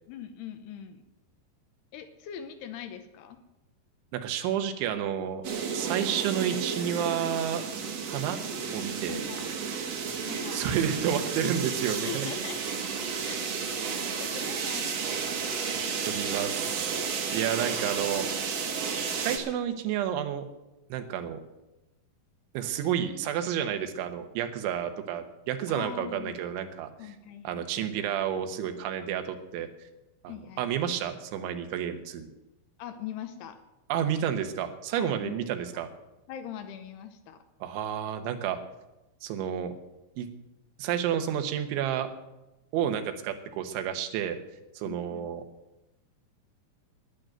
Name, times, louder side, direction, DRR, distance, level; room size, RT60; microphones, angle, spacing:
voice 1, 0.1-1.0 1.9-3.4 9.1-9.6 10.3-10.6 12.0-12.8 13.2-15.2 25.7-26.4 27.0-27.9 30.3-30.7 32.8-33.6 34.9-35.4 35.7-35.8 36.3-37.4 44.8-45.3, left 9 dB, 80° left, 8 dB, 2.7 m, -42 dB
voice 2, 4.1-5.4 5.7-7.6 8.1-8.4 8.7-9.2 10.5-12.3 15.6-15.8 16.0-18.3 19.2-20.5 20.9-21.4 22.5-26.9 27.4-29.7 30.2-32.3 33.9-35.9 37.6-38.6 39.2-39.7 40.2-40.3 40.8-42.1 42.7-44.4 44.8-45.4, right 9 dB, 90° right, 7 dB, 3.5 m, -30 dB
sound 1, 5.4-19.4, right 6 dB, 70° right, 1.5 m, -32 dB
11.5 x 10.5 x 7.7 m, 0.98 s
omnidirectional pair, 5.2 m